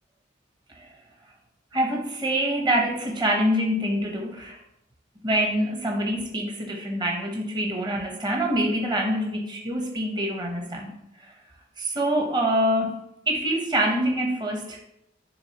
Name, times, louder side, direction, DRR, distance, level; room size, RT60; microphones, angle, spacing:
voice 1, 1.7-4.6 5.2-10.9 11.8-14.8, right 1 dB, 25° right, 0 dB, 0.8 m, -25 dB
9.5 x 3.5 x 2.8 m, 0.82 s
head